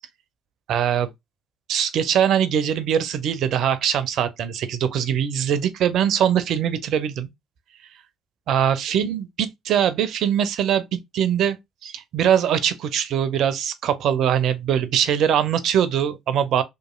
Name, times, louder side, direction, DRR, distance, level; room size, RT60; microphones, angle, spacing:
voice 1, 0.7-1.1 1.7-7.3 8.5-10.8 11.1-11.6 11.8-16.6, right 9 dB, 60° right, 0.4 m, -22 dB
2.9 x 2.4 x 2.2 m
hypercardioid pair, 50°, 0 cm